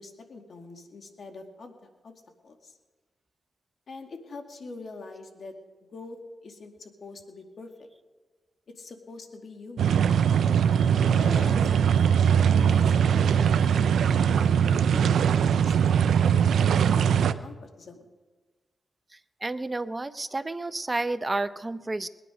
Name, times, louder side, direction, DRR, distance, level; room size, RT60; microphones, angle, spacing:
voice 1, 0.0-2.1 2.4-2.7 3.9-5.6 5.9-7.9 8.8-10.1 11.0-12.1 12.5-12.9 13.2-15.9 16.5-18.0, left 3 dB, 65° left, 3 dB, 2.3 m, -44 dB
sound 1, 9.8-17.3, right 8 dB, 85° right, 0.5 m, -21 dB
voice 2, 19.4-22.1, right 2 dB, 25° right, 13 dB, 0.7 m, -30 dB
20.5 x 10.0 x 5.1 m, 1.3 s
cardioid pair, 60°, 0 cm